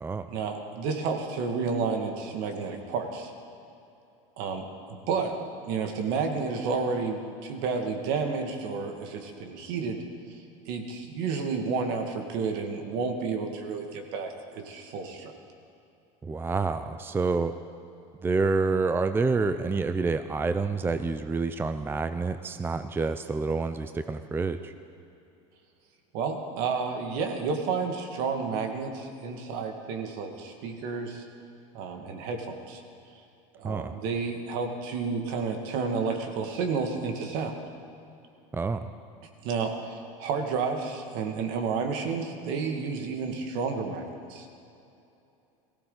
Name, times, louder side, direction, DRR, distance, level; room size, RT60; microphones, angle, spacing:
voice 1, 0.3-3.3 4.4-5.3 5.6-10.0 10.3-10.4 10.6-15.3 26.1-31.2 31.7-32.8 33.5-37.5 39.4-44.5, right 5 dB, 65° right, 4 dB, 1.9 m, -31 dB
voice 2, 16.2-17.5 18.2-24.7 33.6-34.0 38.5-38.9, right 4 dB, 15° right, 10 dB, 0.5 m, -28 dB
17.5 x 16.0 x 3.9 m, 2.8 s
supercardioid pair, 100°, 17 cm